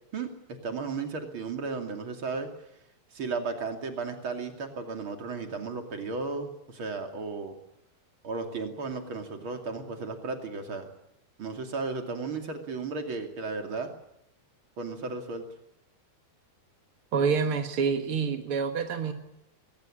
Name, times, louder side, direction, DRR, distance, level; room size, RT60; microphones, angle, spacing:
voice 1, 0.6-2.5 3.1-7.5 8.2-10.9 11.4-13.9 14.8-15.4, right 4 dB, 35° right, 5 dB, 2.8 m, -34 dB
voice 2, 17.1-19.1, right 5 dB, 65° right, 6 dB, 1.3 m, -27 dB
22.5 x 19.5 x 10.0 m, 0.81 s
omnidirectional pair, 5.0 m